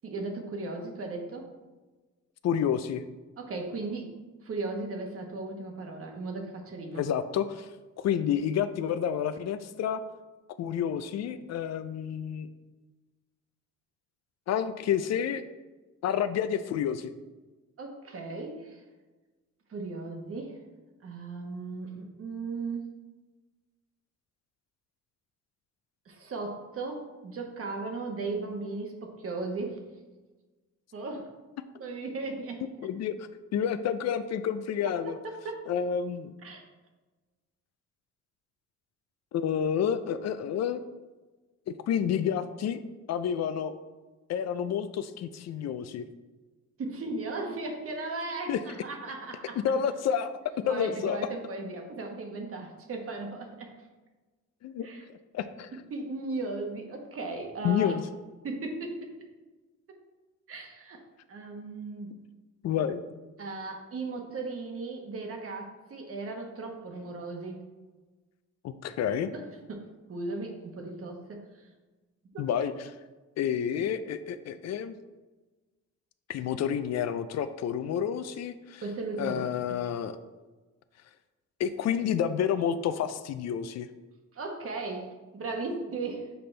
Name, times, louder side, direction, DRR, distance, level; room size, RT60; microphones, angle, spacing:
voice 1, 0.0-1.5 3.4-4.1 4.4-7.1 17.8-18.8 19.7-20.6 21.0-22.9 26.1-29.8 30.9-31.3 31.8-32.9 34.9-35.6 36.4-36.6 46.8-49.6 50.6-53.7 54.8-55.0 55.9-57.9 58.4-59.2 59.9-60.0 60.5-61.0 61.3-62.1 63.4-67.6 69.3-69.4 69.7-69.8 70.1-71.7 72.3-72.4 78.8-79.8 84.3-86.3, right 3 dB, 50° right, 2 dB, 1.2 m, -36 dB
voice 2, 2.4-3.0 6.9-7.7 8.0-10.0 10.6-12.5 14.5-15.4 16.0-17.1 32.8-35.2 35.7-36.3 39.3-40.8 41.7-42.8 43.1-43.7 44.3-46.1 48.5-48.6 49.6-50.4 50.7-51.2 54.6-54.9 55.3-55.7 57.6-58.0 62.6-63.0 68.6-69.3 72.4-72.9 73.4-74.9 76.3-78.8 79.2-80.1 81.6-83.9, left 8 dB, 60° left, 11 dB, 0.4 m, -29 dB
6.8 x 4.2 x 3.3 m, 1.2 s
cardioid pair, 90°, 30 cm